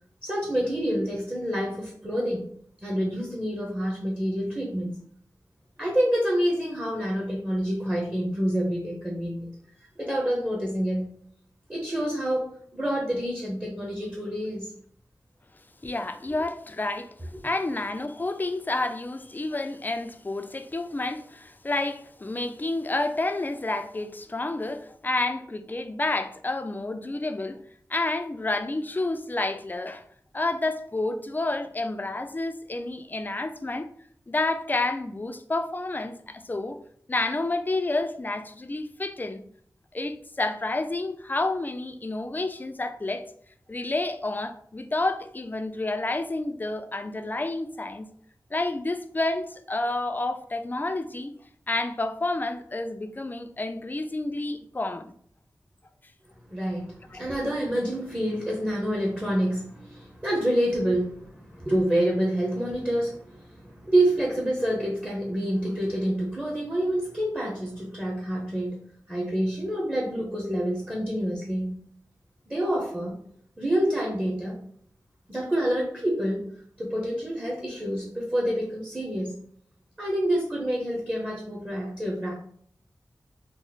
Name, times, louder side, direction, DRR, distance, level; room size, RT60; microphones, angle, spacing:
voice 1, 0.2-2.5 2.8-5.0 5.8-9.5 10.0-11.1 11.7-14.7 15.8-15.9 17.4-17.5 56.5-68.8 69.1-71.8 72.5-73.2 73.6-74.7 75.3-76.4 76.8-79.4 80.0-82.3, right 1 dB, 20° right, 0.8 m, -27 dB
voice 2, 15.8-27.6 27.9-30.0 30.3-33.9 34.3-36.8 37.1-39.4 39.9-43.2 43.7-48.1 48.5-51.3 51.7-55.1 57.1-57.3, left 2 dB, 25° left, 0.3 m, -29 dB
3.0 x 2.0 x 3.9 m
wide cardioid pair, 75°, 7 cm